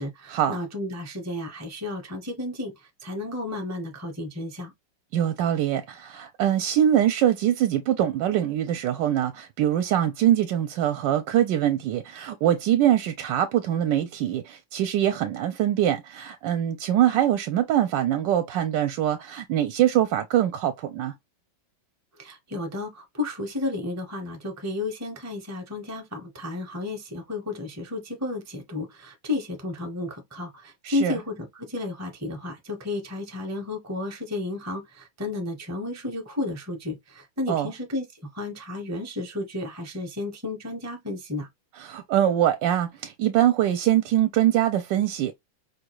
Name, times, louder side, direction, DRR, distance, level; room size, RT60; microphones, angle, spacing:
voice 1, 0.0-2.7 3.0-4.7 22.2-38.0 38.3-41.5, left 2 dB, 15° right, 0.6 m, -32 dB
voice 2, 5.1-21.1 30.8-31.2 37.5-37.7 41.8-45.3, right 11 dB, 75° right, 1.2 m, -23 dB
5.0 x 2.3 x 3.0 m
omnidirectional pair, 2.0 m